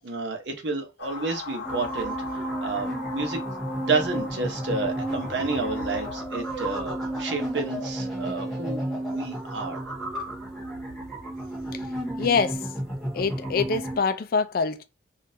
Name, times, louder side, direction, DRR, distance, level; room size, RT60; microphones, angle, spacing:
voice 1, 0.0-3.4 3.8-8.8 9.1-9.9, right 3 dB, 65° right, 0.9 m, -30 dB
sound 1, 1.0-6.2, left 6 dB, 70° left, 0.7 m, -40 dB
sound 2, 1.6-14.0, right 1 dB, ahead, 1.5 m, -32 dB
voice 2, 12.2-12.7 13.1-14.8, left 5 dB, 45° left, 0.4 m, -25 dB
3.7 x 2.5 x 2.6 m
head